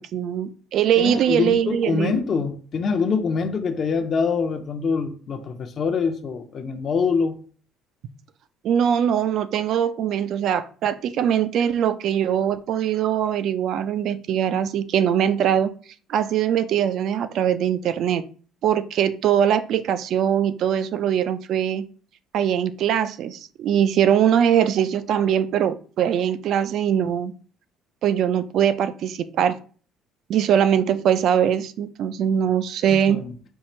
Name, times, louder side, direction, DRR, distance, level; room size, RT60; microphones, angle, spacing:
voice 1, 0.1-2.2 8.6-15.7 16.1-18.2 18.6-21.9 22.3-27.3 28.0-29.6 30.3-33.2, right 9 dB, 60° right, 0.4 m, -22 dB
voice 2, 1.0-7.4 32.9-33.3, left 5 dB, 40° left, 0.6 m, -24 dB
4.6 x 2.4 x 4.3 m
cardioid pair, 115°, 0 cm